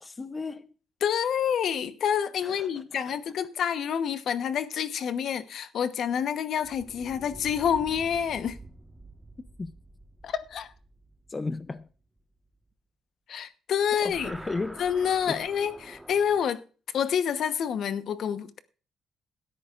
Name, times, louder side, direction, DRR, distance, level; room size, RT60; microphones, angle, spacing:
voice 1, 0.0-0.7 2.4-3.1 9.6-9.7 11.3-11.9 14.0-14.8 15.3-15.4, left 3 dB, 25° left, 0.7 m, -35 dB
voice 2, 1.0-8.6 10.2-10.7 13.3-14.3 14.8-16.6 16.9-18.6, left 8 dB, 65° left, 1.0 m, -28 dB
sound 1, 6.6-12.2 13.9-16.4, right 2 dB, 10° right, 1.4 m, -47 dB
17.0 x 13.0 x 2.5 m
cardioid pair, 90°, 0 cm